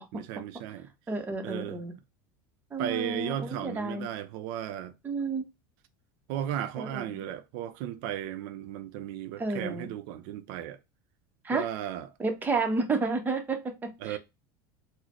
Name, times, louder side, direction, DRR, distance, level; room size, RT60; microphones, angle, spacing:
voice 1, 0.0-0.9 1.4-1.8 2.8-5.0 6.3-10.8 11.5-12.1 14.0-14.2, right 11 dB, 65° right, 0.4 m, -35 dB
voice 2, 1.1-1.9 2.7-4.1 5.0-5.4 6.8-7.1 9.4-9.9 11.4-11.7 12.2-14.2, right 3 dB, 15° right, 0.7 m, -31 dB
3.8 x 2.0 x 3.0 m
supercardioid pair, 130°, 12 cm